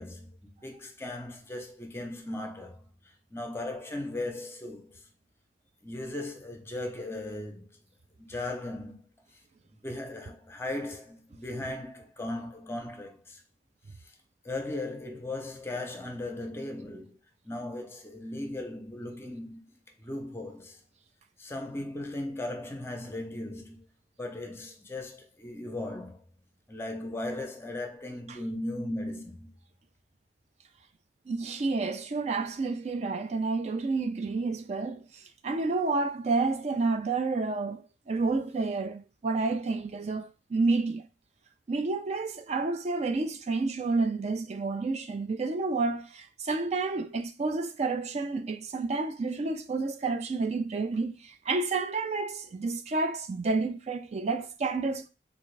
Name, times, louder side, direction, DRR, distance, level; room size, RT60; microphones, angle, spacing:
voice 1, 0.0-5.1 5.8-7.7 8.2-9.1 9.3-9.4 9.7-13.4 14.0-14.1 14.4-17.2 17.4-20.8 21.4-23.9 24.2-26.2 26.7-29.5, left 1 dB, 15° left, 0.6 m, -37 dB
voice 2, 31.3-41.1 41.7-55.1, right 3 dB, 40° right, 0.4 m, -30 dB
3.5 x 2.5 x 3.2 m
head